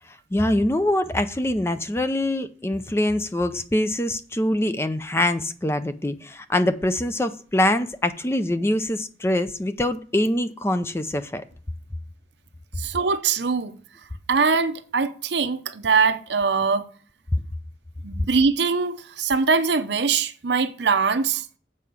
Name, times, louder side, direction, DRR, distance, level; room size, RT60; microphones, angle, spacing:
voice 1, 0.1-11.4, left 1 dB, 15° left, 0.4 m, -24 dB
voice 2, 12.8-13.7 14.3-16.9 18.0-21.5, right 5 dB, 75° right, 0.7 m, -22 dB
7.6 x 4.8 x 6.9 m
head